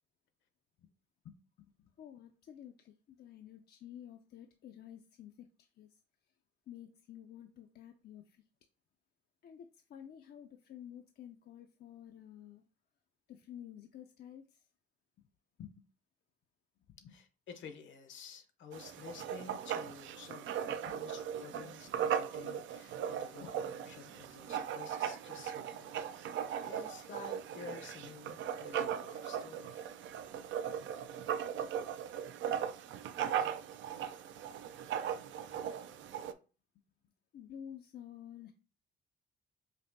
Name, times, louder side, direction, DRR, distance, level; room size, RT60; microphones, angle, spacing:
voice 1, 1.2-6.0 6.7-8.4 9.4-12.6 13.3-14.7 15.2-15.3 15.6-15.8 16.9-17.2 20.8-21.0 21.5-21.7 23.3-23.5 33.8-33.9 35.0-35.1 35.5-36.0 37.3-38.5, left 10 dB, 55° left, 0.5 m, -52 dB
voice 2, 17.1-29.9, left 6 dB, 70° left, 0.9 m, -52 dB
Writing, 18.7-36.3, right 9 dB, 75° right, 0.4 m, -38 dB
5.3 x 2.5 x 2.6 m
cardioid pair, 90°, 20 cm